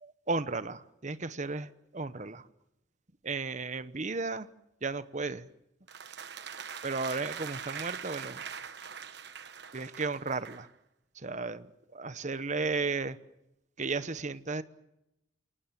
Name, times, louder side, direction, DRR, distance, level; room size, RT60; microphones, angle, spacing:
voice 1, 0.0-2.5 3.2-4.5 4.8-5.5 6.8-8.4 9.7-10.7 11.2-13.2 13.8-14.6, right 3 dB, 40° right, 14 dB, 1.0 m, -34 dB
sound 1, 5.9-10.7, right 7 dB, 60° right, 1.2 m, -42 dB
28.5 x 19.0 x 7.5 m, 0.87 s
head